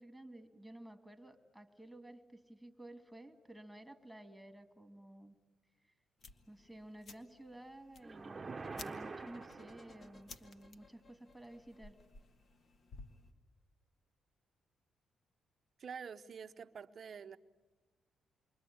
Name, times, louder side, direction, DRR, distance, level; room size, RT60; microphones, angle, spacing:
voice 1, 0.0-5.4 5.8-5.9 6.5-12.0, right 1 dB, ahead, 7 dB, 2.3 m, -53 dB
sound 1, 6.2-13.3, left 3 dB, 50° left, 1.8 m, -57 dB
sound 2, 8.0-10.3, right 4 dB, 30° right, 1.0 m, -46 dB
sound 3, 8.6-12.5, left 2 dB, 30° left, 1.6 m, -62 dB
voice 2, 15.8-17.4, right 6 dB, 50° right, 9 dB, 0.8 m, -47 dB
28.5 x 24.0 x 8.6 m, 1.2 s
cardioid pair, 90°, 0 cm